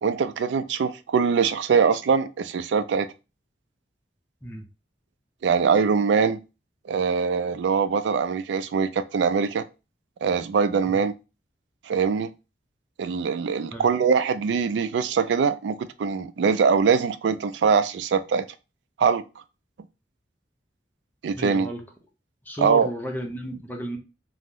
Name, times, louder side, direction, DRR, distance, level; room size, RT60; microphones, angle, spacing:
voice 1, 0.0-3.1 5.4-6.4 6.9-9.6 10.2-11.1 11.9-12.3 13.0-18.5 19.0-19.2 21.2-21.7 22.6-22.9, right 6 dB, 85° right, 0.3 m, -22 dB
voice 2, 21.3-21.8 22.5-24.0, equal, 10° left, 0.6 m, -33 dB
2.9 x 2.0 x 3.6 m
head